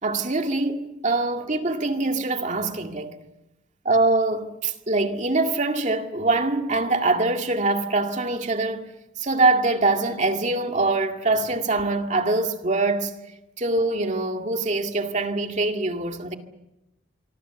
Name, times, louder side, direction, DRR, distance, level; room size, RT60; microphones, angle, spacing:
voice 1, 0.0-3.2 3.8-8.9 9.2-13.1 13.6-16.4, right 2 dB, 35° right, 2.1 m, -23 dB
25.5 x 24.5 x 7.1 m
head